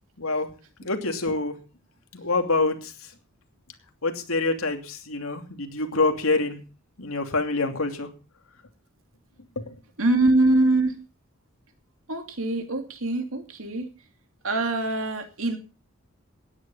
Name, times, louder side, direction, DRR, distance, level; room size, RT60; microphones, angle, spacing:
voice 1, 0.2-0.5 0.8-1.5 2.1-3.1 4.0-6.6 7.0-8.1 9.6-9.8, left 3 dB, 80° left, 5 dB, 2.7 m, -26 dB
voice 2, 10.0-11.1 12.1-13.9 14.4-15.6, right 2 dB, 70° right, 6 dB, 2.7 m, -23 dB
16.5 x 10.0 x 5.6 m, 0.34 s
head